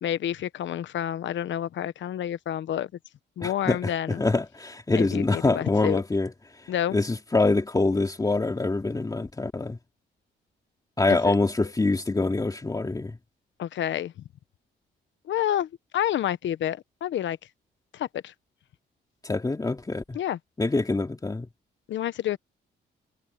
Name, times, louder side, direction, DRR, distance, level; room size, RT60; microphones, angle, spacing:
voice 1, 0.0-2.9 3.4-4.2 4.9-6.0 6.7-7.0 11.1-11.4 13.6-14.1 15.3-17.4 17.9-18.3 20.1-20.4 21.9-22.4, left 11 dB, 70° left, 1.1 m, -29 dB
voice 2, 3.4-6.3 6.9-9.8 11.0-13.2 19.2-20.2 20.6-21.5, left 3 dB, 20° left, 2.7 m, -25 dB
cardioid pair, 90°, 20 cm